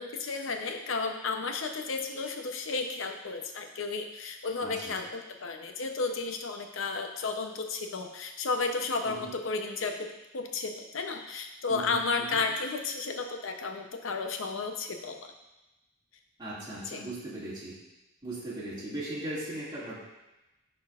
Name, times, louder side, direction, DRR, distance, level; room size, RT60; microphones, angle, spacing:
voice 1, 0.0-15.3 16.8-17.0, left 4 dB, 85° left, 5 dB, 0.7 m, -33 dB
voice 2, 4.6-4.9 9.0-9.3 11.7-12.4 16.4-17.7 18.2-20.0, right 1 dB, 25° right, -8 dB, 2.0 m, -38 dB
10.5 x 4.4 x 2.4 m, 1.0 s
head